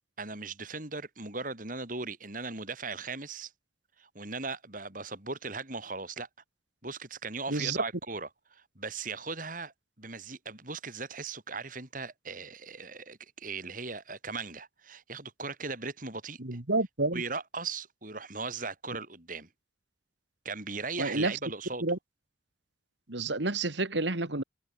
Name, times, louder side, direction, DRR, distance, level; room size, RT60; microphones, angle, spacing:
voice 1, 0.2-3.5 4.0-6.3 6.8-9.7 10.0-16.6 17.1-19.5 20.4-21.9, right 4 dB, 45° right, 4.7 m, -38 dB
voice 2, 16.4-17.2 21.0-21.3 21.8-22.0 23.1-24.4, right 2 dB, 75° right, 2.4 m, -29 dB
head